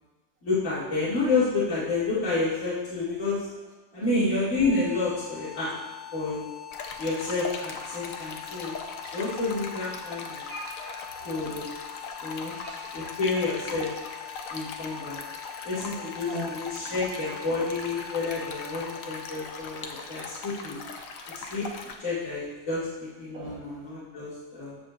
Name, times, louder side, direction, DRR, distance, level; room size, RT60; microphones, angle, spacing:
voice 1, 0.4-3.4 3.9-5.8 6.1-6.4 7.0-8.7 9.1-10.4 11.2-11.7 12.2-12.5 12.9-13.9 14.5-15.2 15.6-20.8 21.5-21.6 22.0-22.8 23.2-24.8, left 3 dB, 40° left, -11 dB, 2.5 m, -29 dB
sound 1, 4.5-21.5, left 12 dB, 75° left, 1.6 m, -44 dB
Stream, 6.7-21.9, left 4 dB, 60° left, 0.9 m, -40 dB
voice 2, 10.5-11.4 12.4-12.8 15.2-15.3 16.3-16.6 23.3-23.6, equal, 80° right, -3 dB, 2.5 m, -39 dB
14.0 x 7.3 x 2.5 m, 1.2 s
omnidirectional pair, 2.1 m